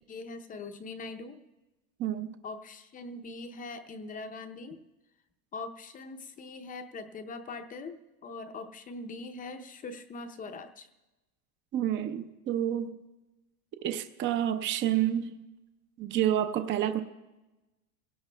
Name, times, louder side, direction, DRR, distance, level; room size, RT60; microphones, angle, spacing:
voice 1, 0.1-1.4 2.4-4.8 5.5-10.9, left 3 dB, 20° left, 7 dB, 0.6 m, -42 dB
voice 2, 2.0-2.4 11.7-12.9 13.8-15.4 16.0-17.0, right 11 dB, 30° right, 9 dB, 0.6 m, -29 dB
28.0 x 17.0 x 2.2 m, 1.1 s
supercardioid pair, 140°, 41 cm